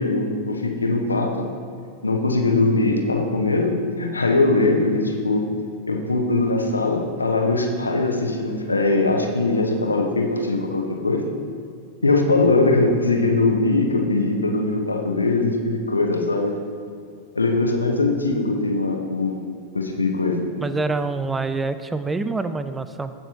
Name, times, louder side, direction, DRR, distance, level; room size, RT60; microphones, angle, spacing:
voice 1, 0.0-1.5 2.0-5.5 5.9-11.3 12.0-16.5 17.3-19.4 19.7-20.4, left 2 dB, 80° left, 2 dB, 1.0 m, -21 dB
voice 2, 20.6-23.1, right 3 dB, 10° right, 11 dB, 0.4 m, -26 dB
15.5 x 5.9 x 2.9 m, 2.2 s
figure-of-eight pair, 90°, 0 cm